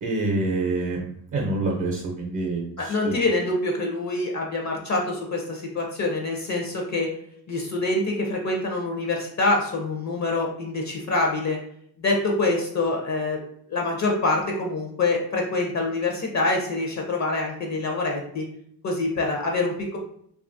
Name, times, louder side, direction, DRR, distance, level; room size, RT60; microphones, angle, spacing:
voice 1, 0.0-3.1, right 2 dB, 50° right, -1 dB, 0.6 m, -27 dB
voice 2, 2.8-7.1 7.5-11.6 12.0-13.4 13.7-18.5 18.8-20.0, left 2 dB, 45° left, 0 dB, 0.5 m, -25 dB
2.7 x 2.3 x 2.5 m, 0.68 s
cardioid pair, 100°, 41 cm